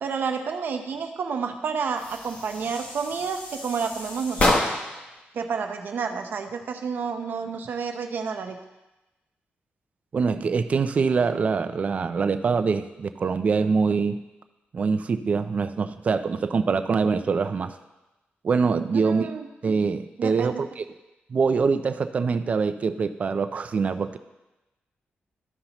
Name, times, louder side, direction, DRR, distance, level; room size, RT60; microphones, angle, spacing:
voice 1, 0.0-4.5 5.3-8.6 19.0-19.5 20.2-20.6, right 5 dB, 55° right, 6 dB, 0.7 m, -30 dB
sound 1, 2.0-5.1, left 1 dB, 35° left, 1.0 m, -28 dB
voice 2, 10.1-14.2 14.7-17.8 18.4-19.3 19.6-20.8 21.3-24.2, right 5 dB, 35° right, 10 dB, 0.4 m, -24 dB
13.0 x 5.6 x 3.0 m, 1.0 s
wide cardioid pair, 175°, 4 cm